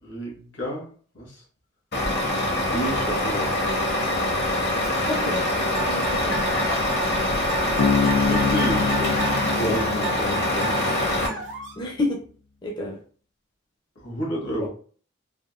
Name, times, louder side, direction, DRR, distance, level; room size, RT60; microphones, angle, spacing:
voice 1, 0.0-0.9 1.1-1.4 2.7-3.5 8.0-9.3 9.7-10.9 13.9-14.7, equal, 70° left, -2 dB, 1.4 m, -31 dB
Truck, 1.9-11.3, left 1 dB, 55° left, 0.9 m, -24 dB
voice 2, 5.0-6.4 9.4-9.9 11.8-12.2 12.6-13.0, left 1 dB, 25° left, -1 dB, 0.6 m, -29 dB
sound 1, 5.7-11.8, right 4 dB, 75° right, 0.6 m, -33 dB
Bass guitar, 7.8-11.3, left 5 dB, 85° left, 0.3 m, -26 dB
3.4 x 2.5 x 2.4 m, 0.42 s
head